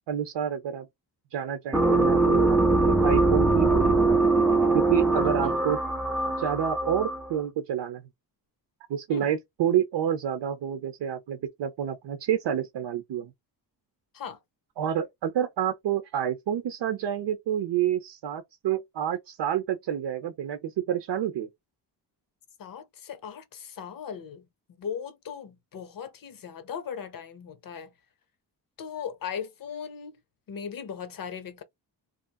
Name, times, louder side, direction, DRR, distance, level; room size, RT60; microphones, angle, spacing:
voice 1, 0.1-0.9 1.3-2.6 2.9-4.2 4.7-5.8 6.4-8.0 8.9-13.3 14.8-21.5, right 9 dB, 80° right, 0.7 m, -28 dB
sound 1, 1.7-7.4, right 2 dB, ahead, 0.6 m, -22 dB
voice 2, 5.2-5.5 9.1-9.3 14.1-14.4 22.6-27.9 28.8-30.2 30.5-31.6, left 7 dB, 55° left, 0.7 m, -38 dB
3.0 x 2.5 x 2.2 m
cardioid pair, 95°, 42 cm